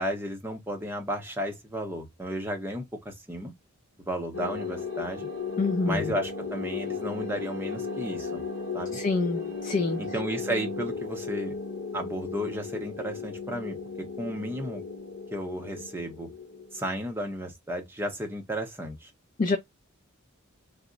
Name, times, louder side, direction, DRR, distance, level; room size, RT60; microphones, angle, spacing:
voice 1, 0.0-3.5 4.1-5.3 5.8-8.4 8.7-9.0 10.0-11.5 11.9-14.8 15.3-16.3 16.7-19.1, equal, 10° right, 0.6 m, -33 dB
sound 1, 4.3-17.1, left 5 dB, 65° left, 1.0 m, -35 dB
voice 2, 5.6-6.0 8.9-10.0 19.4-19.6, left 3 dB, 35° left, 0.3 m, -26 dB
2.3 x 2.0 x 3.7 m
head